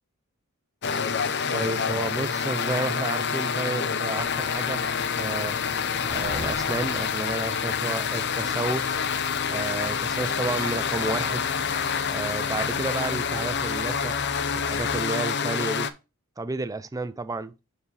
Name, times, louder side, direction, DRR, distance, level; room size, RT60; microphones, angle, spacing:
sound 1, 0.8-15.9, left 6 dB, 55° left, 0.6 m, -27 dB
voice 1, 1.5-4.8 5.2-5.6 6.1-9.0 9.5-11.5 12.1-14.1 14.5-15.9 16.4-17.5, right 2 dB, 15° right, 0.4 m, -31 dB
sound 2, 4.2-15.0, left 1 dB, 15° left, 1.1 m, -42 dB
8.2 x 4.7 x 3.3 m
head